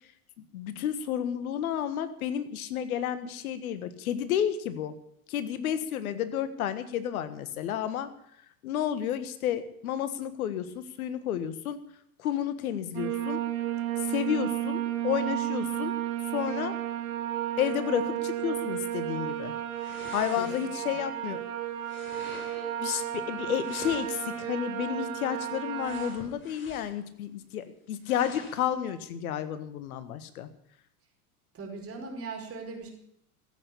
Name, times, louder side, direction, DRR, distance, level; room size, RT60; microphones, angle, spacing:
voice 1, 0.5-5.0 5.3-8.1 8.6-11.8 12.2-13.4 14.1-15.9 16.3-16.8 17.6-19.5 20.1-21.4 22.8-30.5, left 10 dB, 70° left, 12 dB, 1.6 m, -31 dB
sound 1, 12.9-26.1, right 12 dB, 65° right, 2.0 m, -33 dB
sound 2, 19.7-20.9 21.8-22.7 23.5-24.5 25.8-27.1 27.4-27.5 28.0-28.7, left 3 dB, 25° left, 3.8 m, -47 dB
voice 2, 20.4-20.8 31.5-32.9, right 4 dB, 30° right, 2 dB, 5.1 m, -39 dB
15.0 x 8.6 x 8.5 m, 0.72 s
hypercardioid pair, 85°, 44 cm